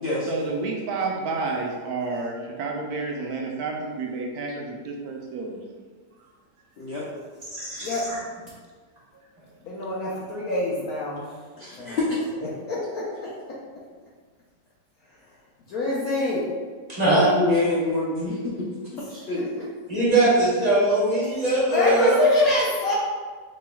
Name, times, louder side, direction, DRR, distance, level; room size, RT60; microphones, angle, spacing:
voice 1, 0.3-5.6, right 3 dB, 70° right, 0 dB, 1.0 m, -30 dB
voice 2, 7.5-8.2 17.0-17.3 19.9-22.1, right 2 dB, 25° right, -9 dB, 1.3 m, -21 dB
voice 3, 9.6-11.3 11.8-12.0 12.7-13.3 15.7-16.5 19.3-19.7 21.4-22.9, left 1 dB, 70° left, -7 dB, 1.0 m, -25 dB
voice 4, 11.6-12.2 17.4-18.7 19.1-19.4, left 2 dB, 90° left, -7 dB, 0.5 m, -26 dB
4.2 x 3.1 x 2.3 m, 1.5 s
omnidirectional pair, 1.8 m